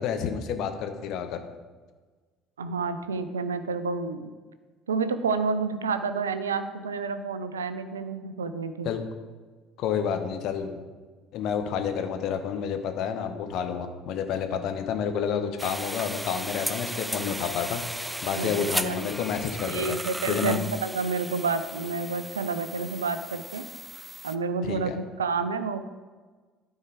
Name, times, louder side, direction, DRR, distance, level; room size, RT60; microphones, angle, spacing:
voice 1, 0.0-1.4 8.8-9.0 9.8-10.8 11.3-17.8 18.2-20.0 20.3-20.6 24.6-25.0, left 7 dB, 55° left, 7 dB, 1.0 m, -29 dB
voice 2, 2.6-4.3 4.9-8.9 14.5-14.6 18.3-18.5 18.8-19.1 19.6-23.7 24.2-25.9, right 4 dB, 80° right, 10 dB, 0.5 m, -29 dB
sound 1, 15.6-24.4, right 1 dB, 5° right, 0.6 m, -36 dB
12.5 x 4.5 x 4.8 m, 1.4 s
figure-of-eight pair, 55°, 0 cm